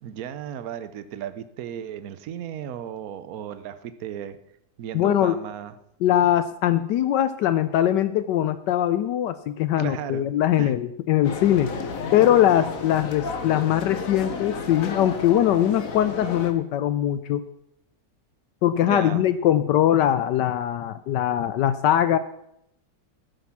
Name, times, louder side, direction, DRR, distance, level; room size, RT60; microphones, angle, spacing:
voice 1, 0.0-4.4 4.8-5.7 9.8-10.3 10.6-10.7 18.8-19.2, right 9 dB, 60° right, 12 dB, 1.1 m, -35 dB
voice 2, 4.9-5.4 6.0-11.7 12.1-17.4 18.6-22.2, left 11 dB, 75° left, 13 dB, 1.2 m, -21 dB
sound 1, 11.2-16.5, left 5 dB, 50° left, 1.4 m, -32 dB
14.5 x 7.7 x 6.0 m, 0.77 s
omnidirectional pair, 2.0 m